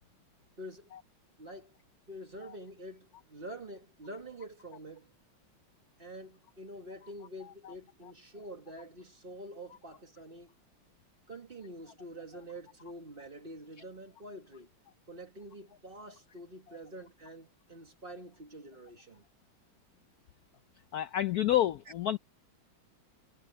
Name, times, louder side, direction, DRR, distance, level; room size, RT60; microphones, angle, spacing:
voice 1, 0.6-0.9 1.4-1.8 2.1-5.1 6.0-10.5 11.3-14.7 15.1-19.2, right 1 dB, 30° right, 1.6 m, -47 dB
voice 2, 20.9-22.2, left 12 dB, 70° left, 0.9 m, -29 dB
omnidirectional pair, 2.2 m